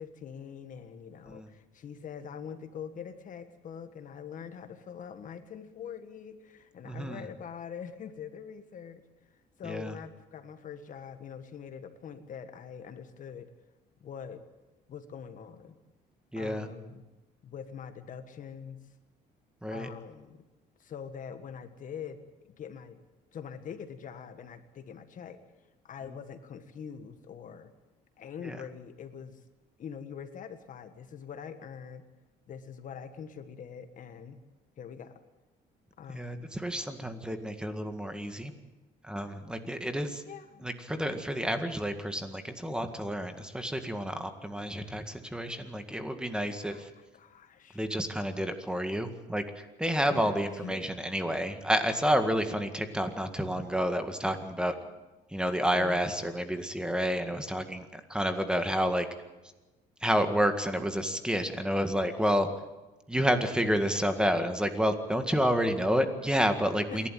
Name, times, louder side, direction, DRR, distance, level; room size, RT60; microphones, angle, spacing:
voice 1, 0.0-9.0 9.6-13.5 14.0-14.5 14.9-15.8 16.4-17.1 17.4-18.8 19.7-20.4 20.8-22.2 22.5-23.0 23.3-25.4 25.8-27.7 28.2-29.4 29.8-32.0 32.5-34.4 34.8-35.2 36.0-36.5 40.2-40.7 46.6-47.8 50.1-51.0 55.7-56.0 66.9-67.1, left 7 dB, 50° left, 9 dB, 1.6 m, -44 dB
voice 2, 6.8-7.2 9.6-9.9 16.3-16.7 19.6-19.9 28.4-28.6 36.1-38.5 39.0-40.2 40.6-46.9 47.7-54.8 55.3-59.1 60.0-62.5 63.1-67.1, equal, 5° right, 7 dB, 1.9 m, -30 dB
27.0 x 12.0 x 9.3 m, 1.1 s
cardioid pair, 110°, 17 cm